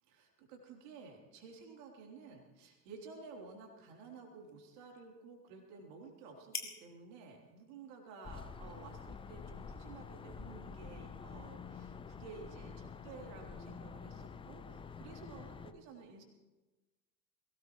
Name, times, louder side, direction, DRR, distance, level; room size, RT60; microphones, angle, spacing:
voice 1, 0.0-16.2, right 4 dB, 55° right, 1 dB, 3.6 m, -53 dB
sound 1, 2.2-9.9, left 4 dB, 85° left, 1.9 m, -53 dB
sound 2, 8.2-15.7, left 5 dB, 10° left, 0.5 m, -48 dB
21.5 x 18.0 x 3.2 m, 1.2 s
figure-of-eight pair, 75°, 49 cm